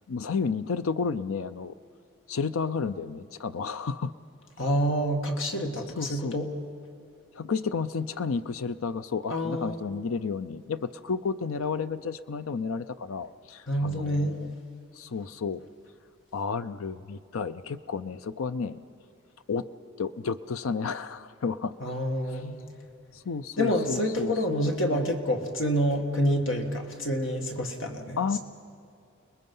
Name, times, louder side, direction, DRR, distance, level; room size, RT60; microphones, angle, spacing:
voice 1, 0.1-1.7 2.3-4.1 6.0-6.3 7.3-14.5 15.0-15.6 16.3-18.8 19.5-19.6 20.0-21.8 23.1-25.1 28.2-28.4, left 5 dB, 80° left, 12 dB, 0.5 m, -32 dB
voice 2, 4.6-6.5 9.3-9.8 13.7-14.4 21.8-22.6 23.6-28.2, equal, 65° left, 3 dB, 2.0 m, -27 dB
30.0 x 20.0 x 5.5 m, 2.5 s
head